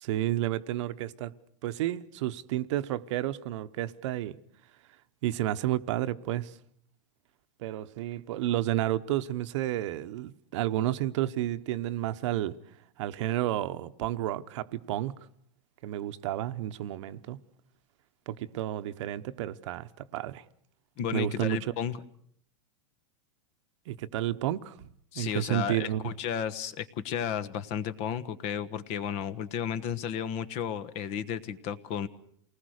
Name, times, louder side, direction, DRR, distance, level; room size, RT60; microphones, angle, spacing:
voice 1, 0.0-1.3 1.6-4.4 5.2-6.5 7.6-12.5 13.0-15.1 15.8-17.4 18.3-20.4 21.1-21.7 23.9-24.8 25.1-26.2, right 13 dB, 65° right, 1.0 m, -31 dB
voice 2, 21.0-22.0 25.1-32.1, left 8 dB, 40° left, 1.3 m, -33 dB
28.5 x 19.5 x 6.5 m
supercardioid pair, 150°, 17 cm